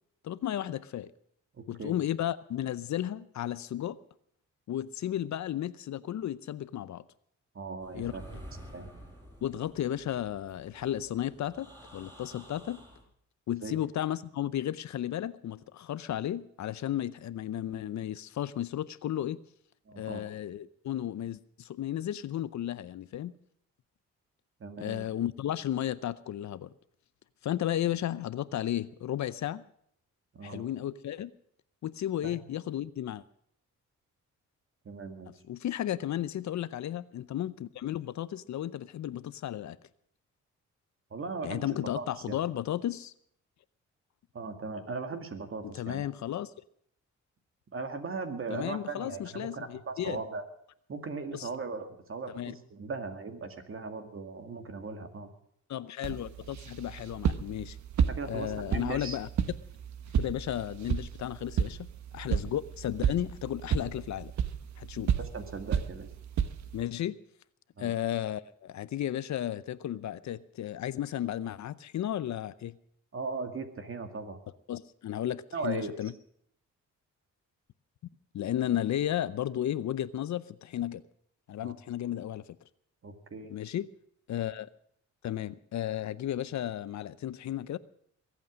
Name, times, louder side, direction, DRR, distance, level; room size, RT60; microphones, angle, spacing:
voice 1, 0.2-1.1 1.7-4.0 4.7-7.0 7.9-8.1 9.4-12.8 13.5-19.4 20.0-23.3 24.8-26.7 27.4-29.6 30.4-31.3 31.8-33.2 35.5-39.8 41.4-43.1 45.7-46.5 48.5-50.2 51.3-51.5 52.4-52.5 55.7-57.8 58.3-59.3 60.2-61.9 62.1-64.3 64.8-65.1 66.7-67.2 67.8-72.8 74.7-76.1 78.3-81.0 81.5-82.4 83.5-83.9 84.3-84.7 85.2-87.8, left 11 dB, 65° left, 17 dB, 0.7 m, -34 dB
voice 2, 1.6-1.9 7.5-8.2 8.7-8.9 13.6-13.8 19.9-20.2 24.6-25.0 30.3-30.7 32.2-32.4 34.8-35.3 41.1-42.4 44.3-46.1 47.7-50.4 50.9-55.3 58.1-59.2 62.2-62.4 65.2-66.1 67.8-67.9 73.1-74.4 75.5-75.9 81.6-81.7 83.0-83.6, right 4 dB, 45° right, 6 dB, 2.2 m, -38 dB
sound 1, 7.8-13.0, right 1 dB, 15° right, 6.5 m, -50 dB
sound 2, 56.0-66.8, right 8 dB, 65° right, 1.1 m, -32 dB
22.0 x 8.4 x 6.3 m, 0.66 s
cardioid pair, 95°, 30 cm